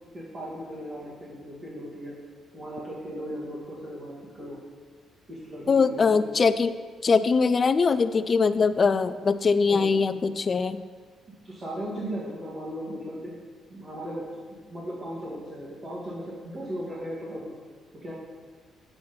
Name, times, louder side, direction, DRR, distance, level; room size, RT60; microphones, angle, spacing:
voice 1, 0.1-2.1 2.5-4.6 5.3-6.4 9.7-9.9 11.4-13.3 13.7-14.2 14.5-17.6 17.9-18.1, equal, 40° right, -8 dB, 2.2 m, -37 dB
voice 2, 5.7-6.7 7.0-10.8, left 5 dB, 40° left, 13 dB, 0.4 m, -22 dB
7.7 x 6.2 x 4.4 m, 1.5 s
cardioid pair, 90°, 0 cm